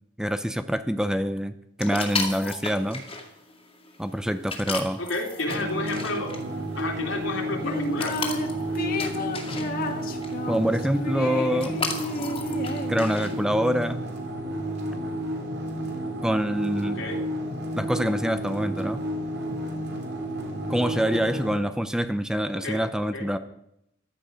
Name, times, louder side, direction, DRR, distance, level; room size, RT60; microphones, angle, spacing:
voice 1, 0.2-3.0 4.0-5.0 10.5-11.8 12.9-14.0 16.2-17.1 17.7-19.0 20.7-23.4, equal, 5° right, 10 dB, 0.6 m, -26 dB
sound 1, 1.8-13.4, left 4 dB, 30° left, 2.2 m, -36 dB
voice 2, 5.0-6.3 6.7-8.2 16.9-17.2 22.5-22.8 23.1-23.3, left 2 dB, 75° left, 1 dB, 3.3 m, -31 dB
sound 2, 5.5-21.6, right 1 dB, 55° right, 3.3 m, -31 dB
sound 3, 7.6-8.5 8.8-13.4, left 1 dB, 50° left, 1.5 m, -32 dB
15.5 x 12.5 x 5.2 m, 0.79 s
head